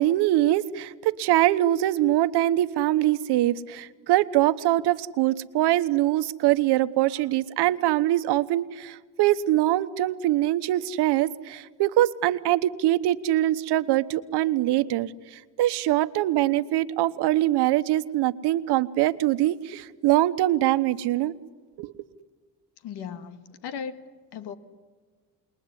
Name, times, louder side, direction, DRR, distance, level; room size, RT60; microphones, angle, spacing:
voice 1, 0.0-21.3 21.8-21.9, right 14 dB, 80° right, 1.2 m, -23 dB
voice 2, 22.8-24.0 24.3-24.5, left 7 dB, 80° left, 2.0 m, -36 dB
28.0 x 21.5 x 9.9 m
cardioid pair, 130°, 40 cm